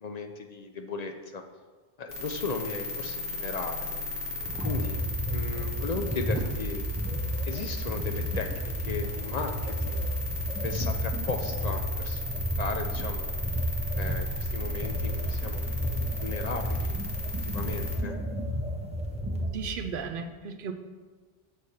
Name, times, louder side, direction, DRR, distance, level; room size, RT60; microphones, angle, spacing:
voice 1, 0.0-1.4 2.0-4.0 4.6-5.0 5.3-6.8 7.5-10.1 10.6-12.2 12.6-13.3 13.9-18.2, left 4 dB, 50° left, 5 dB, 0.6 m, -36 dB
sound 1, 2.1-18.0, left 2 dB, 65° left, 1.5 m, -36 dB
sound 2, 4.4-20.0, equal, 10° right, 0.6 m, -32 dB
voice 2, 19.4-20.7, right 6 dB, 60° right, 6 dB, 0.8 m, -35 dB
6.5 x 4.2 x 6.3 m, 1.4 s
omnidirectional pair, 1.1 m